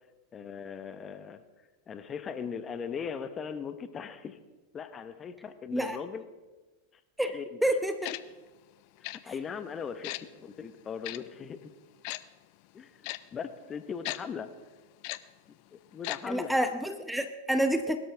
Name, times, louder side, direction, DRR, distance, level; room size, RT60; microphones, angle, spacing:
voice 1, 0.3-1.4 1.9-4.4 4.7-6.2 7.3-7.4 9.2-11.7 12.7-14.5 15.7-16.5, left 6 dB, 25° left, 11 dB, 1.1 m, -39 dB
voice 2, 7.2-8.1 9.2-9.3 16.3-18.0, right 1 dB, 5° right, 9 dB, 0.9 m, -29 dB
Tick-tock, 8.0-8.2 9.0-9.2 10.0-10.2 11.0-11.2 12.0-12.2 13.0-13.2 14.0-14.2 15.0-15.2 16.0-16.2 16.5-16.6, left 22 dB, 55° left, 0.6 m, -35 dB
22.0 x 12.5 x 3.5 m, 1.2 s
hypercardioid pair, 95°, 0 cm